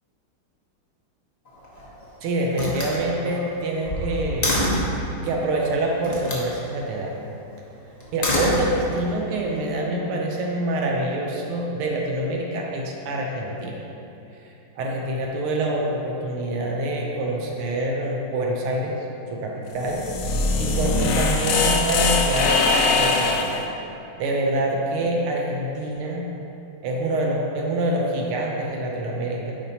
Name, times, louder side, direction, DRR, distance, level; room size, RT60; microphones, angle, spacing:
Slam, 1.5-2.0 2.5-5.0 6.0-6.5 8.0-9.1, left 1 dB, 60° left, 0.4 m, -26 dB
voice 1, 2.2-4.6 5.2-7.1 8.1-13.8 14.4-14.5 14.8-19.0 19.3-20.1 20.6-22.7 22.9-23.5 24.2-26.3 26.8-29.5, right 1 dB, 85° right, -1 dB, 1.6 m, -26 dB
sound 1, 19.7-23.6, left 3 dB, 75° left, 1.0 m, -21 dB
8.4 x 5.1 x 2.8 m, 2.8 s
omnidirectional pair, 2.3 m